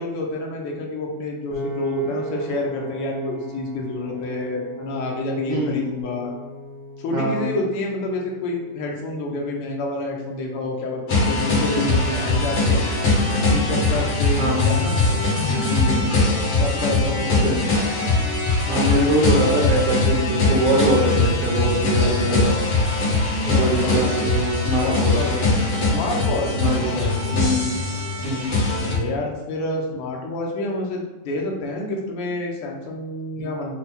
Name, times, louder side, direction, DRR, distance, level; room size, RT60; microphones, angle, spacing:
voice 1, 0.0-6.3 7.0-12.8 13.5-15.0 16.6-17.6 23.4-24.0 24.8-27.2 28.8-33.8, left 2 dB, 75° left, 0 dB, 1.3 m, -28 dB
Piano, 1.5-13.8, right 1 dB, 90° left, 3.2 m, -39 dB
voice 2, 5.5-5.8 7.1-7.5 11.6-12.0 14.4-14.8 15.6-16.2 17.2-17.6 18.7-22.6 23.5-25.1 26.6-27.7 28.2-28.5 33.4-33.5, right 1 dB, 65° right, -5 dB, 1.7 m, -23 dB
sound 1, 11.1-29.0, left 2 dB, 55° left, 2.3 m, -21 dB
5.8 x 2.3 x 4.1 m, 1.1 s
omnidirectional pair, 3.4 m